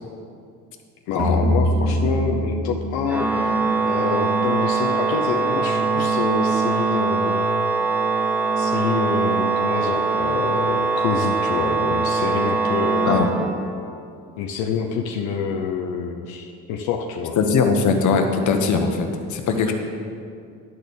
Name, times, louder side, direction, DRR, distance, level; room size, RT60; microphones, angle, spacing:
voice 1, 1.1-3.6 3.8-7.4 8.6-13.2 14.4-17.4, left 6 dB, 85° left, 1 dB, 0.8 m, -27 dB
sound 1, 1.2-4.4, equal, 60° right, 1.9 m, -24 dB
Organ, 3.1-14.0, right 4 dB, 5° right, 0.6 m, -22 dB
voice 2, 17.4-19.7, left 5 dB, 55° left, 4 dB, 1.2 m, -20 dB
11.0 x 4.3 x 7.0 m, 2.3 s
cardioid pair, 100°, 35 cm